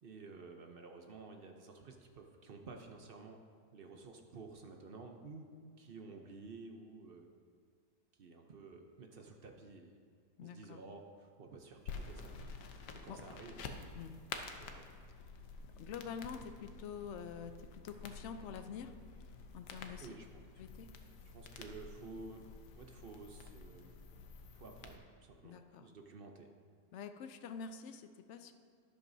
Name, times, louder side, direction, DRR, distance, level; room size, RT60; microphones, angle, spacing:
voice 1, 0.0-3.4 3.7-5.5 5.8-7.3 8.2-10.0 10.4-12.4 12.7-13.8 14.6-14.9 20.0-20.4 21.2-24.0 24.5-26.5, right 3 dB, 50° right, 3 dB, 0.7 m, -52 dB
voice 2, 10.4-10.8 13.1-13.2 14.0-14.2 15.8-18.9 19.2-20.1 20.6-20.9 25.4-25.9 26.9-28.5, left 6 dB, 70° left, 8 dB, 0.6 m, -47 dB
sound 1, 11.9-25.0, left 4 dB, 90° left, 1.4 m, -50 dB
12.0 x 11.0 x 2.7 m, 2.1 s
omnidirectional pair, 1.7 m